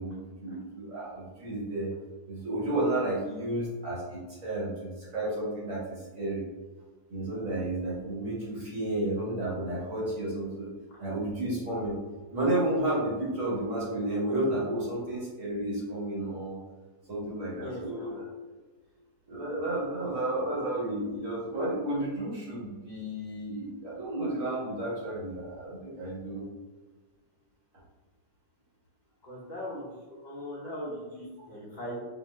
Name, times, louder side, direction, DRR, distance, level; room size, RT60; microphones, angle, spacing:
voice 1, 0.0-1.9 2.3-6.5 7.1-10.7 11.0-12.0 12.3-16.6 17.1-18.3 19.3-26.4, right 1 dB, 50° right, -6 dB, 1.3 m, -32 dB
voice 2, 17.6-18.1 29.2-32.0, equal, 40° left, -9 dB, 0.6 m, -39 dB
4.6 x 2.5 x 3.2 m, 1.3 s
omnidirectional pair, 2.0 m